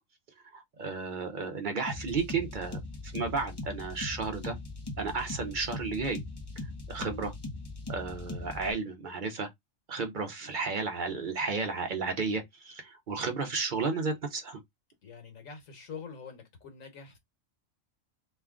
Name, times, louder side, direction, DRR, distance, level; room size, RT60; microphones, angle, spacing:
voice 1, 0.5-4.6 5.0-6.2 6.9-7.3 7.9-9.5 9.9-14.6, right 4 dB, 50° right, 0.6 m, -33 dB
sound 1, 1.9-8.7, left 2 dB, 25° left, 0.7 m, -40 dB
voice 2, 15.0-17.2, left 6 dB, 90° left, 1.5 m, -45 dB
3.0 x 2.3 x 3.5 m
omnidirectional pair, 1.3 m